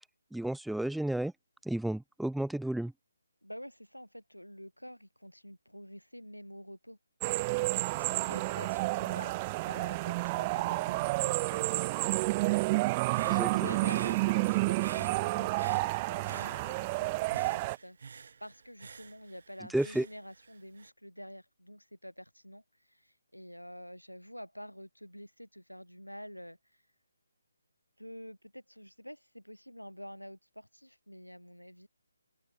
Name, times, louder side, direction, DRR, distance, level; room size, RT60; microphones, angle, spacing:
voice 1, 0.3-1.3 1.7-2.9 13.2-13.5 19.7-20.1, right 1 dB, ahead, 0.3 m, -32 dB
voice 2, 3.4-7.0 7.7-9.4 9.7-11.8 13.5-26.8 28.0-31.9, equal, 90° left, 5.7 m, -48 dB
sound 1, 7.2-17.8, right 23 dB, 20° right, 0.9 m, -30 dB
Human voice / Breathing, 12.8-17.0 17.3-20.9, right 5 dB, 50° right, 2.0 m, -49 dB
figure-of-eight pair, 145°, 0 cm